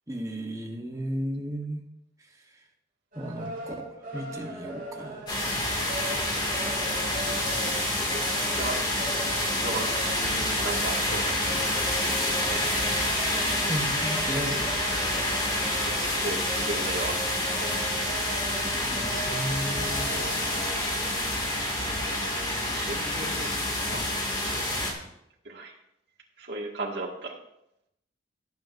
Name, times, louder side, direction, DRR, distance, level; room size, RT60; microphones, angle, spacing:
voice 1, 0.1-1.8 2.2-2.7 3.1-5.3 13.5-14.9 18.9-20.4, equal, 20° right, 2 dB, 1.2 m, -35 dB
sound 1, 3.1-22.8, right 2 dB, 50° right, 4.5 m, -40 dB
sound 2, 5.3-24.9, left 1 dB, 25° left, 2.3 m, -28 dB
voice 2, 8.0-8.8 9.4-11.6 15.8-15.9 16.2-17.2 17.7-17.8 22.6-23.5 23.9-24.0 24.4-25.0 25.5-25.7 26.4-27.4, right 2 dB, 70° right, -2 dB, 1.9 m, -36 dB
18.0 x 7.9 x 2.6 m, 0.81 s
head